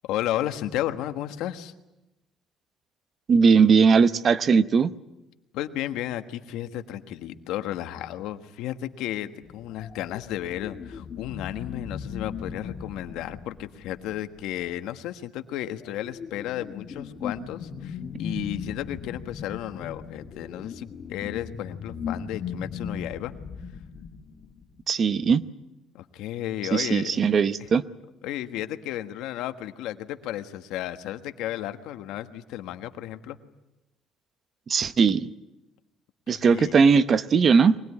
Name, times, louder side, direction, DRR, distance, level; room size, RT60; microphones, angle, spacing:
voice 1, 0.0-1.7 5.5-23.3 25.9-27.2 28.2-33.4 36.3-36.8, left 12 dB, 85° left, 9 dB, 1.4 m, -33 dB
voice 2, 3.3-4.9 24.9-25.4 26.7-27.8 34.7-35.3 36.3-37.7, right 5 dB, 35° right, 14 dB, 0.8 m, -19 dB
sound 1, 9.4-14.6 15.5-24.8, left 6 dB, 35° left, 1.5 m, -38 dB
23.5 x 20.0 x 9.7 m, 0.98 s
cardioid pair, 135°, 0 cm